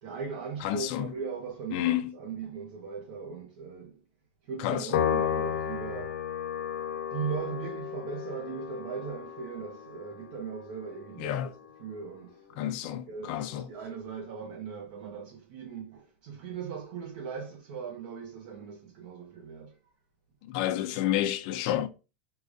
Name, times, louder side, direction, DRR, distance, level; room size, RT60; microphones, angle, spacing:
voice 1, 0.0-1.9 2.1-4.0 4.4-6.2 7.1-11.5 11.8-19.8, right 6 dB, 50° right, 0.7 m, -39 dB
voice 2, 0.6-1.1 1.7-2.1 4.6-5.0 11.2-11.5 12.6-13.7 20.4-21.9, left 12 dB, 40° left, 0.4 m, -30 dB
Piano, 4.9-11.5, left 9 dB, 75° left, 0.7 m, -33 dB
4.7 x 2.4 x 2.5 m
supercardioid pair, 175°, 6 cm